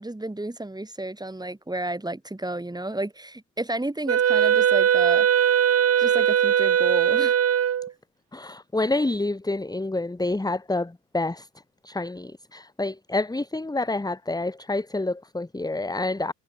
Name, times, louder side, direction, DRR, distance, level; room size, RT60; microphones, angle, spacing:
voice 1, 0.0-5.3 6.0-7.4, right 1 dB, 10° right, 7.1 m, -32 dB
Wind instrument woodwind instrument, 4.1-7.9, right 9 dB, 40° right, 1.1 m, -20 dB
voice 2, 8.3-11.5 11.8-16.3, left 2 dB, 10° left, 2.2 m, -28 dB
hypercardioid pair, 65°, 39 cm